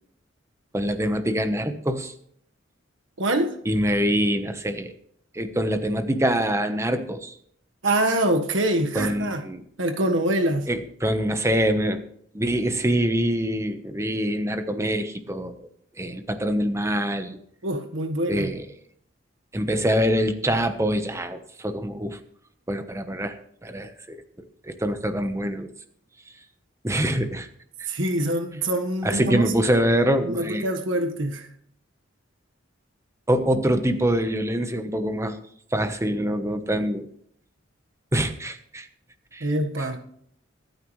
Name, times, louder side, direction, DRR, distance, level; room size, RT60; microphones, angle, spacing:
voice 1, 0.7-2.1 3.7-4.9 5.3-7.4 8.9-9.6 10.7-12.0 12.3-15.6 16.0-17.4 18.3-18.6 19.5-22.2 22.7-25.7 26.8-27.5 27.8-27.9 29.0-30.7 33.3-35.4 35.7-37.1 38.1-38.9 39.3-39.5, equal, 15° right, 8 dB, 1.1 m, -25 dB
voice 2, 3.2-3.6 7.8-9.4 9.8-10.7 17.6-18.5 27.9-29.5 30.2-31.5 39.4-40.0, right 1 dB, 80° right, 5 dB, 1.5 m, -25 dB
24.5 x 9.1 x 3.2 m, 0.66 s
head